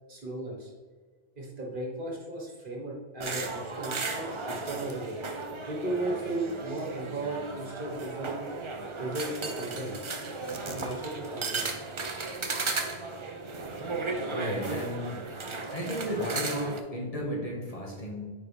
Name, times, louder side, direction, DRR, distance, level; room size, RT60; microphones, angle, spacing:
voice 1, 0.1-0.7 1.3-5.2 5.6-8.4 9.0-10.0 10.6-11.7, right 2 dB, 50° right, -2 dB, 1.6 m, -35 dB
sound 1, 3.2-16.8, right 3 dB, 35° right, 0.6 m, -35 dB
voice 2, 14.3-15.2 15.7-18.2, equal, 35° left, -2 dB, 1.3 m, -33 dB
9.4 x 4.1 x 3.4 m, 1.4 s
omnidirectional pair, 1.1 m